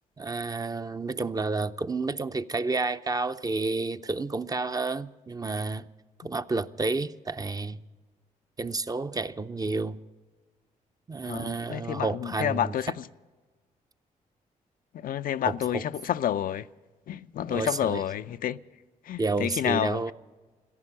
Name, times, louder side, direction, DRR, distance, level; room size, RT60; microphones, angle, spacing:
voice 1, 0.2-5.9 6.2-7.8 8.6-10.0 11.1-12.7 15.4-15.8 17.5-18.0 19.2-20.1, right 3 dB, 25° right, 0.6 m, -30 dB
voice 2, 11.3-13.1 14.9-16.7 17.1-18.6 19.0-20.1, left 10 dB, 70° left, 0.4 m, -29 dB
14.0 x 11.0 x 8.8 m
cardioid pair, 65°, 15 cm